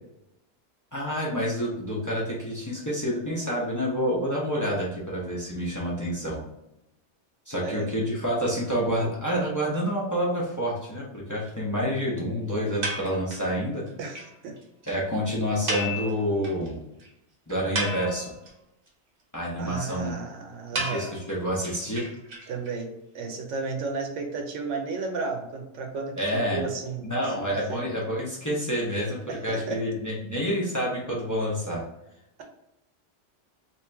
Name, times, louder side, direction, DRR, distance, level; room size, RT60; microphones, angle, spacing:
voice 1, 0.9-6.4 7.5-13.9 14.9-16.8 17.5-18.3 19.3-20.2 20.7-22.0 26.2-26.6 27.0-31.8, equal, 20° left, -5 dB, 0.6 m, -28 dB
voice 2, 7.6-7.9 14.0-14.6 19.6-21.1 22.5-27.1 27.4-27.8 29.3-29.8, right 4 dB, 90° right, 3 dB, 1.0 m, -33 dB
sound 1, 12.8-13.5 13.9-14.0 14.1-14.3 14.6-14.7 14.8-15.0 15.7-16.7 17.0-17.1 17.5-18.5 20.7-22.7, right 1 dB, 55° right, 1.0 m, -32 dB
3.0 x 2.8 x 3.3 m, 0.87 s
omnidirectional pair, 1.2 m